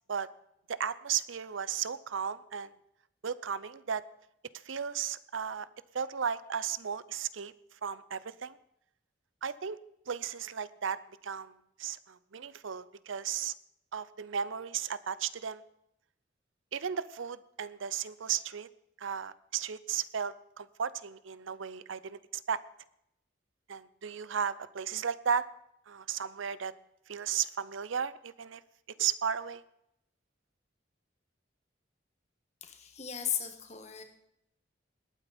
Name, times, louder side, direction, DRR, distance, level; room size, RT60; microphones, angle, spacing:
voice 1, 0.7-2.7 3.2-4.0 4.5-5.7 5.9-8.6 9.4-9.8 10.1-13.5 13.9-15.6 16.7-18.7 19.0-22.6 23.7-25.5 25.9-26.7 27.1-28.6 29.0-29.6, right 7 dB, 85° right, 17 dB, 0.6 m, -35 dB
voice 2, 32.6-34.0, left 8 dB, 35° left, 6 dB, 1.6 m, -36 dB
20.0 x 9.1 x 4.3 m, 0.79 s
head